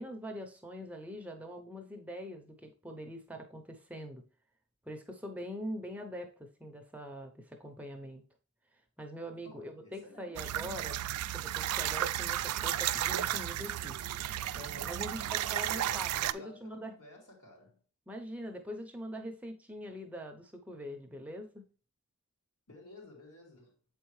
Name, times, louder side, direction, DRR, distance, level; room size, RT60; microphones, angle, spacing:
voice 1, 0.0-4.2 4.8-8.2 9.0-11.0 11.3-14.0 14.5-16.9 18.1-21.6, equal, 5° right, 0.6 m, -43 dB
voice 2, 9.4-10.5 15.0-17.8 22.7-23.7, left 1 dB, 70° left, 2.8 m, -53 dB
sound 1, 10.4-16.3, right 12 dB, 80° right, 0.3 m, -33 dB
7.6 x 4.5 x 3.1 m
head